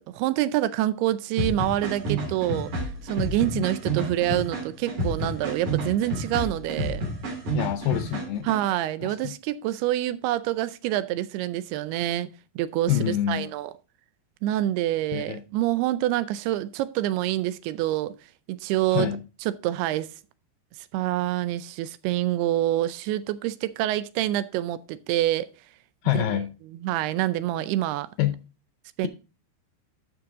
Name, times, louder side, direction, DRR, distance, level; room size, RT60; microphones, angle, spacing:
voice 1, 0.0-7.0 8.4-13.7 14.4-18.2 18.5-19.1 19.4-20.1 20.9-25.5 26.1-26.4 26.7-28.1 29.0-29.1, right 14 dB, 80° right, 2.5 m, -26 dB
sound 1, 1.4-8.6, right 1 dB, 45° right, 4.2 m, -30 dB
voice 2, 7.5-8.5 9.0-9.3 12.9-13.5 15.1-15.4 18.9-19.2 26.0-26.6 28.2-28.4, left 12 dB, 85° left, 1.9 m, -26 dB
12.5 x 5.8 x 3.6 m
omnidirectional pair, 4.8 m